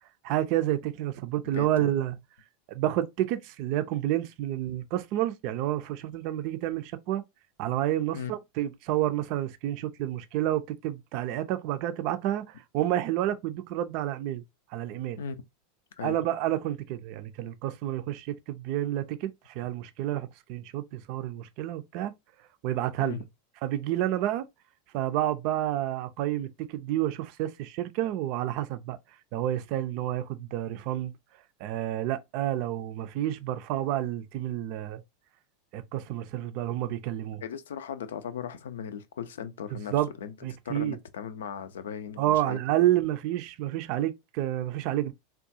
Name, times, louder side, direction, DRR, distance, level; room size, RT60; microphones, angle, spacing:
voice 1, 0.2-2.2 2.7-7.2 7.6-14.4 14.7-15.2 16.0-22.1 22.6-23.2 23.6-24.4 24.9-29.0 29.3-31.1 31.6-35.0 35.7-37.4 39.7-40.1 40.4-41.0 42.2-45.1, right 13 dB, 50° right, 0.4 m, -29 dB
voice 2, 1.5-1.9 8.1-8.3 15.2-15.4 16.0-16.2 23.0-23.2 37.4-40.3 40.6-42.6, left 7 dB, 70° left, 0.4 m, -37 dB
3.7 x 2.3 x 2.6 m
figure-of-eight pair, 85°, 0 cm